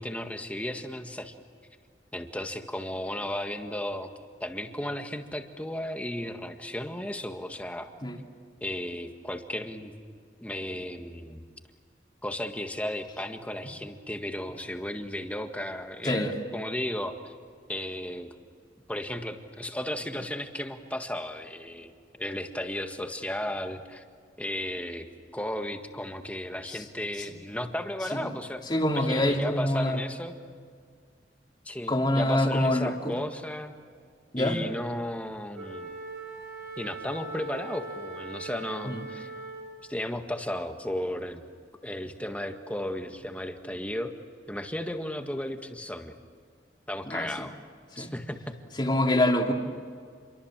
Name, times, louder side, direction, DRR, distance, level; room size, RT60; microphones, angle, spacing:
voice 1, 0.0-1.3 2.1-4.1 4.4-7.9 8.6-9.9 10.4-11.4 12.2-17.3 17.7-18.3 18.9-21.9 22.2-24.0 24.4-25.1 25.3-28.6 28.9-30.4 31.6-33.7 34.4-35.9 36.8-39.3 39.9-41.4 41.8-44.1 44.5-46.1 46.9-47.5 47.9-48.6, left 1 dB, 10° left, 5 dB, 1.7 m, -34 dB
voice 2, 28.7-30.0 31.9-33.1 34.3-34.6 38.9-39.0 47.1-47.5 48.0-48.1 48.8-49.5, left 1 dB, 25° left, 2 dB, 2.8 m, -25 dB
Wind instrument woodwind instrument, 35.5-39.9, right 3 dB, 65° right, 5.1 m, -40 dB
29.0 x 23.5 x 7.5 m, 2.1 s
head